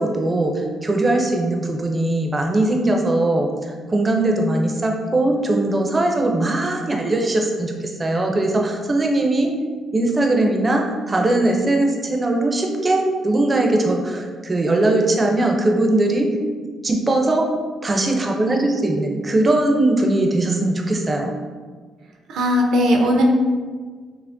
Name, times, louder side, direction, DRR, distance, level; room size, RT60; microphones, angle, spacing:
voice 1, 0.0-9.6 9.9-16.4 16.8-17.5 17.8-21.3, right 2 dB, 25° right, 2 dB, 0.5 m, -20 dB
voice 2, 22.3-23.2, equal, 80° right, 1 dB, 0.6 m, -18 dB
5.7 x 2.1 x 2.5 m, 1.5 s
cardioid pair, 90°, 0 cm